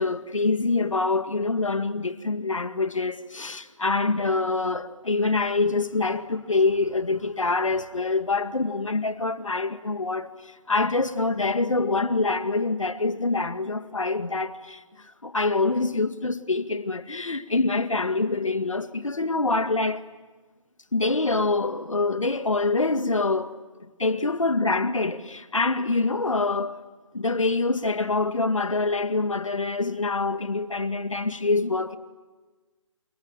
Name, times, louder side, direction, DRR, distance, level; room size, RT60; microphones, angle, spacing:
voice 1, 0.0-14.8 15.2-20.0 20.9-26.8 27.1-32.0, left 3 dB, 75° left, 2.1 m, -25 dB
29.0 x 28.5 x 7.2 m
figure-of-eight pair, 145°, 17 cm